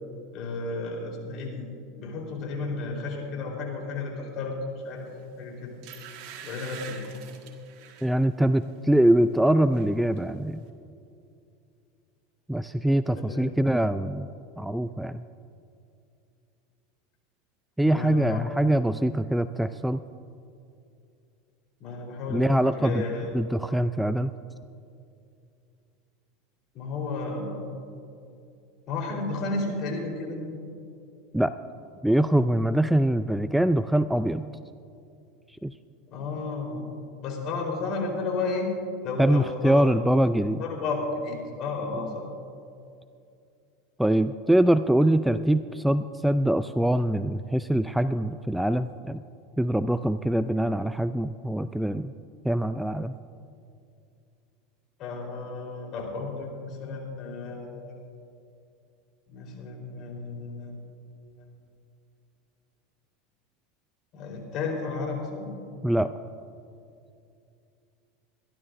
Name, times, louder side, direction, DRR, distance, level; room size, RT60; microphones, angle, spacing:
voice 1, 0.3-1.7 2.0-4.6 4.8-5.0 5.4-5.8 6.4-7.0 13.3-13.5 17.9-18.4 21.8-23.3 26.7-27.6 28.9-30.4 36.1-36.8 37.2-38.7 39.0-39.9 40.6-42.2 55.0-58.0 59.3-60.8 61.4-61.5 64.1-65.5, left 3 dB, 50° left, 0 dB, 3.8 m, -32 dB
sound 1, 5.1-5.3 5.8-8.1 8.6-8.8 9.2-9.9 10.2-10.3, right 8 dB, 60° right, 1.6 m, -44 dB
voice 2, 8.0-10.6 12.5-15.2 17.8-20.0 22.3-23.0 23.3-24.3 31.3-31.5 32.0-34.4 35.6-35.7 39.2-40.6 44.0-49.2 49.6-52.1 52.4-53.1 65.8-66.1, right 1 dB, 5° right, 12 dB, 0.3 m, -23 dB
26.0 x 12.0 x 2.6 m, 2.5 s
hypercardioid pair, 95°, 0 cm